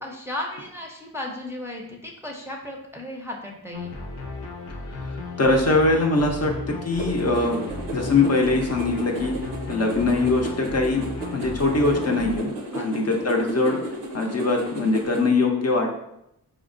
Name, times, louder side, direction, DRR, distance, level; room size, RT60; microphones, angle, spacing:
voice 1, 0.0-3.9 12.7-12.9, left 1 dB, 5° right, -1 dB, 0.5 m, -35 dB
sound 1, 3.7-12.4, left 3 dB, 80° left, 0.7 m, -35 dB
voice 2, 4.9-7.6 7.9-9.4 9.7-11.0 11.3-13.8 14.1-15.9, left 3 dB, 40° left, 1 dB, 0.5 m, -22 dB
sound 2, 7.0-15.3, right 2 dB, 85° right, 0.7 m, -34 dB
4.3 x 2.0 x 2.5 m, 0.80 s
cardioid pair, 55°, 40 cm